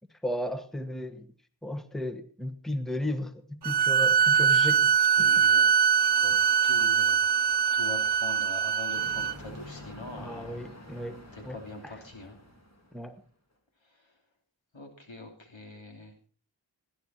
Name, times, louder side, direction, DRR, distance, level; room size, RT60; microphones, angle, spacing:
voice 1, 0.2-1.3 1.6-4.9 5.2-5.3 10.2-11.6 11.8-11.9 12.9-13.2, left 1 dB, ahead, 8 dB, 1.2 m, -34 dB
sound 1, 3.6-9.3, right 7 dB, 65° right, 0.6 m, -23 dB
voice 2, 5.0-6.3 6.6-10.7 11.3-12.4 14.7-16.1, left 2 dB, 85° left, 3 dB, 3.0 m, -44 dB
sound 2, 8.9-13.1, left 1 dB, 35° left, 3.0 m, -47 dB
17.0 x 11.0 x 4.3 m, 0.41 s
wide cardioid pair, 45°, 44 cm